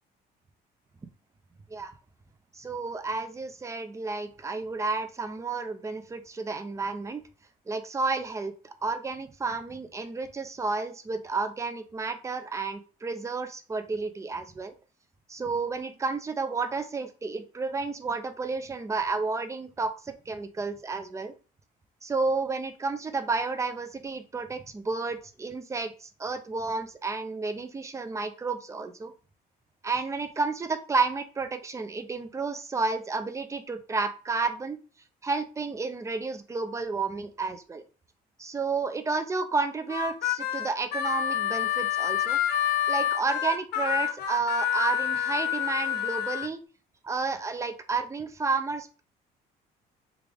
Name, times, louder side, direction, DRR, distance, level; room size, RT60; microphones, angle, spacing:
voice 1, 2.5-7.2 7.7-14.7 15.3-21.3 22.0-29.1 29.8-34.8 35.2-37.8 38.4-42.4 42.9-46.6 47.0-49.0, right 4 dB, 15° right, 8 dB, 0.5 m, -31 dB
Harmonica, 39.9-46.5, left 9 dB, 75° left, 0.5 m, -28 dB
3.5 x 2.4 x 3.4 m, 0.35 s
cardioid pair, 110°, 17 cm